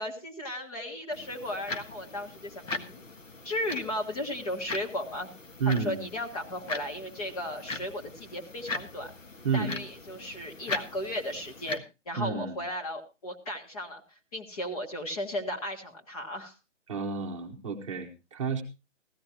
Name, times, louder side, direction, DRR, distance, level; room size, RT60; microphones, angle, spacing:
voice 1, 0.0-3.0 3.4-5.3 5.7-9.1 9.5-14.0 14.3-16.5, left 1 dB, 30° left, 2 dB, 1.7 m, -35 dB
sound 1, 1.1-11.8, left 3 dB, 90° left, 1.7 m, -40 dB
voice 2, 5.6-6.0 9.4-9.8 12.2-12.6 16.9-18.6, right 5 dB, 25° right, 0 dB, 1.1 m, -30 dB
15.5 x 13.5 x 3.0 m, 0.28 s
hypercardioid pair, 160°, 38 cm